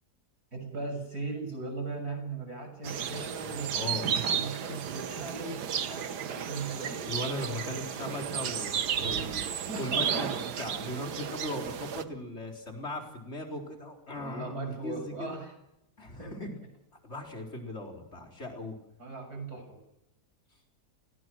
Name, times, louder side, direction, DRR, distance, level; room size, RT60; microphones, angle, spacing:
voice 1, 0.5-7.0 9.4-10.2 14.2-15.5 16.2-16.5 19.0-19.8, right 3 dB, 70° right, 5 dB, 7.1 m, -38 dB
sound 1, 2.8-12.0, right 8 dB, 85° right, 1.7 m, -33 dB
voice 2, 3.7-4.1 7.0-9.4 9.8-15.4 16.0-16.5 17.0-18.7, left 1 dB, 40° left, 2 dB, 4.5 m, -38 dB
30.0 x 19.0 x 6.3 m, 0.89 s
omnidirectional pair, 1.7 m